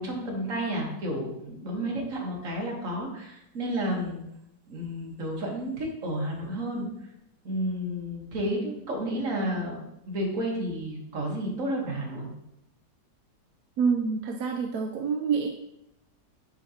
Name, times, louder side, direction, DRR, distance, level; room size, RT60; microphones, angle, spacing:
voice 1, 0.0-4.2 4.7-6.9 7.4-9.8 10.1-12.3, equal, 50° right, -1 dB, 1.6 m, -31 dB
voice 2, 13.8-15.5, right 5 dB, 70° right, 3 dB, 0.9 m, -27 dB
7.1 x 5.1 x 2.8 m, 0.83 s
omnidirectional pair, 1.9 m